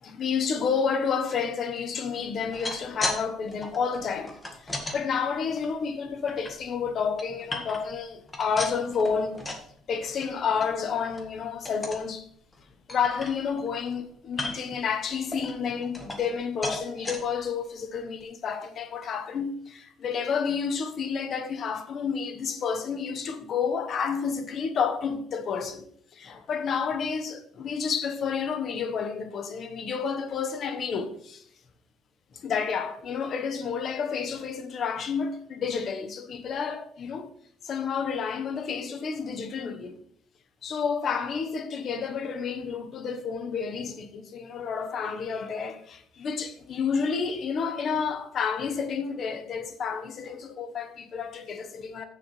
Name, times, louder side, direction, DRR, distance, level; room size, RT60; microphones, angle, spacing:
voice 1, 0.0-9.4 9.9-12.3 12.9-25.8 26.1-31.4 32.3-37.3 37.6-40.0 40.6-52.1, left 6 dB, 45° left, 1.1 m, -30 dB
sound 1, 2.4-3.2 3.5-5.0 5.5-6.5 7.0-8.0 8.3-9.7 10.0-10.3 10.6-10.7 11.1-11.3 11.7-12.1 12.5-12.6 12.9-13.7 14.3-14.8 15.3-16.4 16.6-17.2 17.8-17.9 18.2-18.3, left 2 dB, 15° left, 1.7 m, -35 dB
14.5 x 7.0 x 3.3 m
cardioid pair, 145°, 0 cm